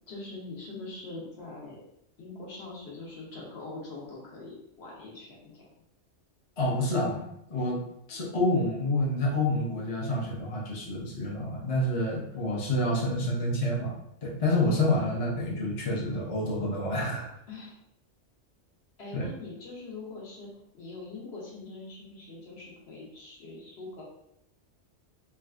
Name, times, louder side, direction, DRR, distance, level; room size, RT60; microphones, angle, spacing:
voice 1, 0.1-1.8 2.2-5.6 17.5-17.8 19.0-24.0, left 3 dB, 60° left, -4 dB, 1.1 m, -43 dB
voice 2, 6.6-7.2 7.5-7.8 8.1-13.9 14.2-17.3 19.1-19.3, left 1 dB, 40° left, -3 dB, 0.6 m, -28 dB
3.6 x 2.2 x 2.4 m, 0.76 s
omnidirectional pair, 1.2 m